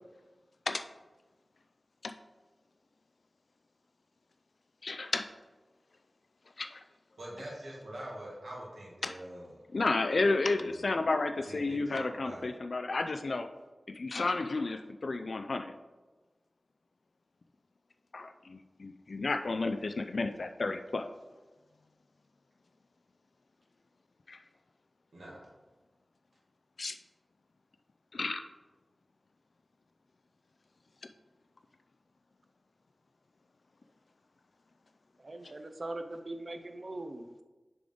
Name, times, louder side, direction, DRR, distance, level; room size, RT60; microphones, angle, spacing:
voice 1, 4.8-5.3 6.6-6.8 9.0-9.1 9.7-13.5 13.9-15.7 18.1-21.1 24.3-24.4 26.8-26.9 28.1-28.4, left 3 dB, 65° left, 7 dB, 0.3 m, -32 dB
voice 2, 7.2-9.5 10.5-10.9 11.5-12.5 25.1-25.5, right 1 dB, 75° right, -5 dB, 1.9 m, -44 dB
voice 3, 35.2-37.4, right 2 dB, 45° right, 7 dB, 0.6 m, -41 dB
6.7 x 3.8 x 5.2 m, 1.2 s
wide cardioid pair, 90°, 0 cm